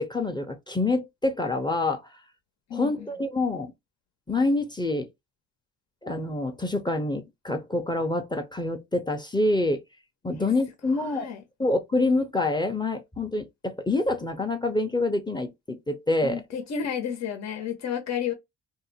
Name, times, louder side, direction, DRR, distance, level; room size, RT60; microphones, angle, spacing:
voice 1, 0.0-2.0 2.7-3.7 4.3-5.1 6.0-9.8 10.2-11.3 11.6-16.4, left 2 dB, 15° left, 0.7 m, -26 dB
voice 2, 2.7-3.1 10.4-10.5 10.9-11.4 16.2-18.3, left 8 dB, 60° left, 0.9 m, -32 dB
2.7 x 2.1 x 4.0 m
cardioid pair, 90°, 30 cm